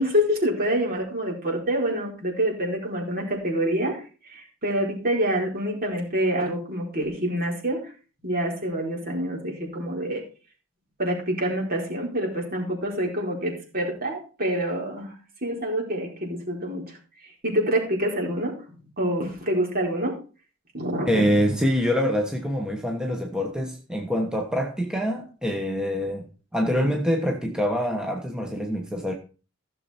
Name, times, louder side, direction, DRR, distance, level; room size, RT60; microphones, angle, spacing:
voice 1, 0.0-7.9 8.2-10.2 11.0-15.1 15.4-17.0 17.2-20.2 20.7-21.3, equal, 50° right, 0 dB, 4.6 m, -27 dB
voice 2, 21.1-26.3 26.5-29.1, equal, 5° right, 2 dB, 1.2 m, -25 dB
15.5 x 6.9 x 4.4 m, 0.36 s
head